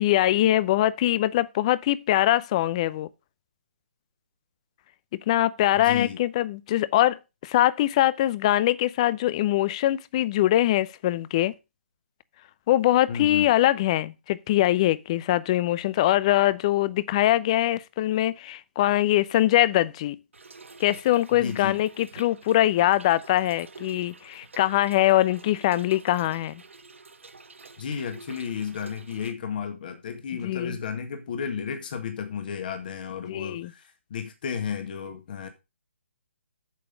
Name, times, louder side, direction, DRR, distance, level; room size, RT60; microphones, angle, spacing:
voice 1, 0.0-3.1 5.3-11.5 12.7-20.2 20.8-26.6 30.4-30.8 33.3-33.7, left 14 dB, 30° left, 0.6 m, -23 dB
voice 2, 5.7-6.2 13.1-13.5 21.4-21.8 27.8-35.5, left 7 dB, 45° left, 1.8 m, -33 dB
Trickle dribble / Fill (with liquid), 20.3-29.3, right 4 dB, 75° right, 1.2 m, -48 dB
8.4 x 6.9 x 5.1 m
figure-of-eight pair, 145°, 7 cm